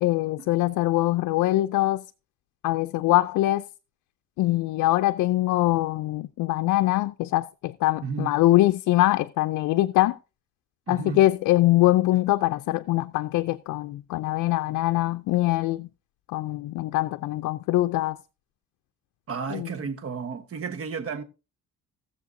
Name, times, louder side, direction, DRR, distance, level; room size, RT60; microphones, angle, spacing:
voice 1, 0.0-2.0 2.6-3.6 4.4-10.2 10.9-15.9 16.3-18.2 19.5-19.7, left 16 dB, 85° left, 0.5 m, -23 dB
voice 2, 8.0-8.3 10.9-11.2 19.3-21.2, right 5 dB, 50° right, 1.2 m, -32 dB
18.5 x 7.1 x 2.6 m
cardioid pair, 90°, 30 cm